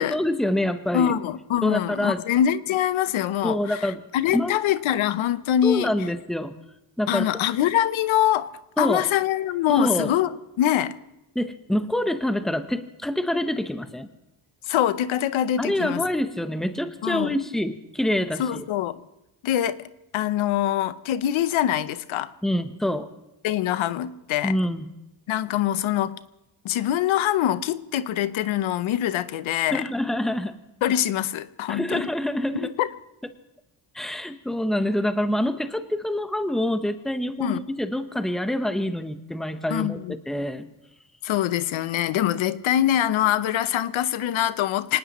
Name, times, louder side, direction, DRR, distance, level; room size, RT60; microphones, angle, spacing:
voice 1, 0.0-1.1 1.6-2.2 3.4-4.0 4.3-4.6 5.6-6.5 7.0-7.3 8.8-9.1 9.7-10.1 11.3-14.1 15.6-18.6 22.4-23.1 24.4-24.9 29.7-30.5 31.7-32.7 33.9-40.0 40.3-40.6, left 1 dB, ahead, 0.9 m, -26 dB
voice 2, 0.9-5.9 7.1-8.5 8.8-10.9 14.7-16.0 17.0-17.3 18.4-19.0 19.4-19.9 20.1-22.3 23.4-24.5 25.3-26.2 26.6-29.8 30.8-32.1 32.5-32.9 37.4-37.6 39.7-40.1 41.2-45.0, left 11 dB, 90° left, 0.8 m, -24 dB
25.0 x 19.0 x 3.1 m
cardioid pair, 120°, 46 cm